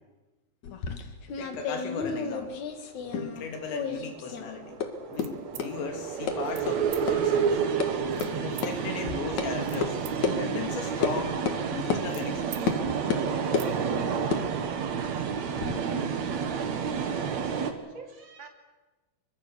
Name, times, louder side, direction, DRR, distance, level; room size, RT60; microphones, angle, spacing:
sound 1, 0.6-3.5 3.7-4.5 4.8-4.9 5.2-5.3 5.6-5.7 6.3-6.4 6.7-6.8 7.1-7.2 7.5-7.9 8.2-8.3 8.6-8.7 9.4-9.5 9.8-9.9 10.2-10.4 11.0-11.2 11.5-11.6 11.9-12.0 12.7-12.8 13.1-13.7 14.2-15.8, left 6 dB, 50° left, 2.6 m, -31 dB
voice 1, 1.4-2.6 3.1-4.8 5.1-7.6 8.4-10.0 10.3-12.6, left 5 dB, 80° left, 4 dB, 4.7 m, -37 dB
sound 2, 3.6-17.7, right 7 dB, 55° right, 2.2 m, -30 dB
sound 3, 5.1-5.7 6.5-6.7 6.9-7.0 8.1-8.7 9.4-10.1 10.5-12.6 13.0-13.1 13.4-13.7, right 12 dB, 80° right, 3.6 m, -45 dB
voice 2, 17.5-18.5, right 4 dB, 30° right, 2 dB, 3.1 m, -45 dB
26.0 x 24.0 x 7.0 m, 1.2 s
omnidirectional pair, 5.1 m